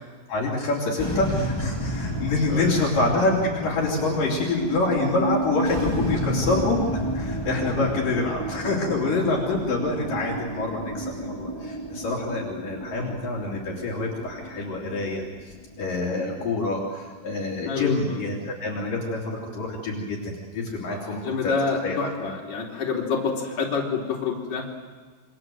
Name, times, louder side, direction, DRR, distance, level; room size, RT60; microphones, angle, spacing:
voice 1, 0.3-15.2 15.8-21.5 21.8-22.1, left 2 dB, 65° left, -3 dB, 4.7 m, -26 dB
sound 1, 1.0-17.4, equal, 10° left, 1.2 m, -31 dB
voice 2, 2.5-2.8 17.7-18.2 21.0-24.7, left 5 dB, 50° left, -2 dB, 4.9 m, -27 dB
28.0 x 25.0 x 7.8 m, 1.4 s
omnidirectional pair, 4.3 m